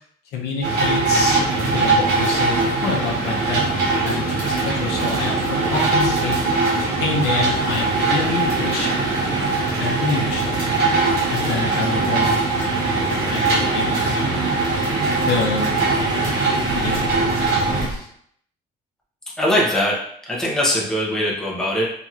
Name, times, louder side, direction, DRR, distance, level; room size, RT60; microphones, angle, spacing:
voice 1, 0.3-1.4 1.7-6.6 7.0-9.4 9.8-10.8 11.3-14.5 15.3-18.1, left 4 dB, 80° left, 0 dB, 0.6 m, -28 dB
sound 1, 0.6-17.9, right 3 dB, 70° right, 1.4 m, -21 dB
sound 2, 7.5-18.0, right 2 dB, 25° right, 0.6 m, -33 dB
voice 2, 19.4-20.0 20.3-21.9, equal, 5° left, -5 dB, 0.9 m, -21 dB
2.9 x 2.8 x 2.4 m, 0.67 s
cardioid pair, 110°, 17 cm